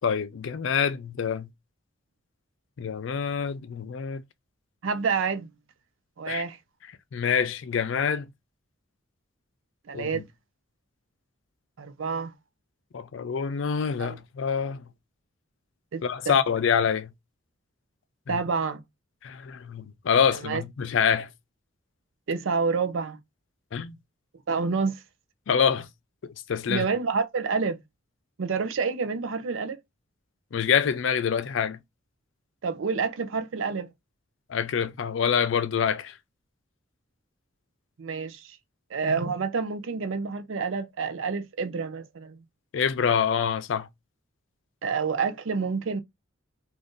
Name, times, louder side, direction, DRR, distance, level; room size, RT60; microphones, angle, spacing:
voice 1, 0.0-1.5 2.8-4.2 6.3-6.4 7.1-8.3 9.9-10.2 12.9-14.8 16.0-17.1 18.3-18.4 19.2-21.3 23.7-24.0 25.5-25.9 26.5-26.9 30.5-31.8 34.5-36.2 42.7-43.9, left 7 dB, 65° left, 0.4 m, -26 dB
voice 2, 4.8-5.5 6.2-6.6 9.9-10.3 11.8-12.3 14.0-14.2 15.9-16.0 18.3-18.8 20.4-20.6 22.3-23.2 24.5-25.0 26.7-27.8 28.4-29.8 32.6-33.9 38.0-38.6 38.9-42.4 44.8-46.0, right 5 dB, 70° right, 0.5 m, -28 dB
2.6 x 2.5 x 3.6 m
head